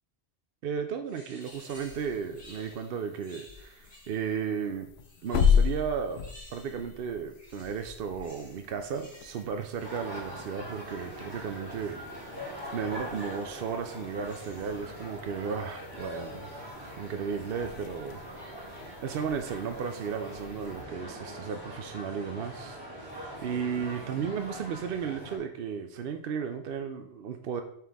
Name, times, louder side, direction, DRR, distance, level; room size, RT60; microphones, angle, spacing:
voice 1, 0.6-4.9 5.2-6.2 6.5-16.5 16.9-18.7 19.0-22.8 23.4-27.6, right 6 dB, 65° right, 6 dB, 0.7 m, -34 dB
sound 1, 1.1-4.4 5.0-7.0 7.3-11.1 12.1-12.5 13.2-13.6 14.1-14.9, equal, 5° left, 2.6 m, -55 dB
sound 2, 1.4-20.8, left 7 dB, 75° left, 0.8 m, -35 dB
sound 3, 9.8-25.4, equal, 20° right, 1.9 m, -42 dB
7.4 x 4.5 x 3.5 m, 0.68 s
omnidirectional pair, 1.1 m